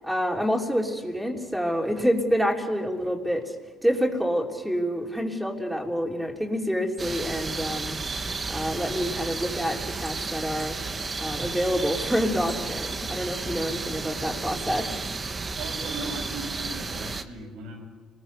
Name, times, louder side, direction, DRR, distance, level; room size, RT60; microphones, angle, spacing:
voice 1, 0.0-3.4 3.8-7.9 8.5-10.8 11.2-14.9, equal, ahead, 1 dB, 3.3 m, -27 dB
sound 1, 7.0-17.2, right 4 dB, 30° right, 1.4 m, -32 dB
voice 2, 15.6-17.9, right 2 dB, 85° right, 1 dB, 7.6 m, -38 dB
30.0 x 20.5 x 6.8 m, 1.4 s
cardioid pair, 115°, 0 cm